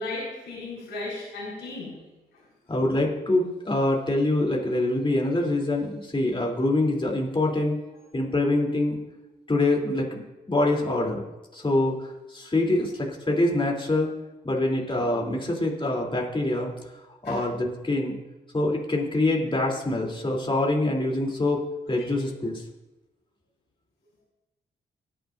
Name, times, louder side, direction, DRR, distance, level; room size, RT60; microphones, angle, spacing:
voice 1, 0.0-2.0 2.3-2.4 12.4-12.5 17.2-17.4, left 2 dB, 85° left, -6 dB, 4.4 m, -35 dB
voice 2, 2.7-7.7 8.1-9.0 9.5-11.2 11.5-14.2 14.4-16.7 17.2-18.2 18.5-22.6, left 2 dB, 25° left, -1 dB, 3.1 m, -25 dB
19.5 x 9.1 x 2.6 m, 1.1 s
supercardioid pair, 45°, 18 cm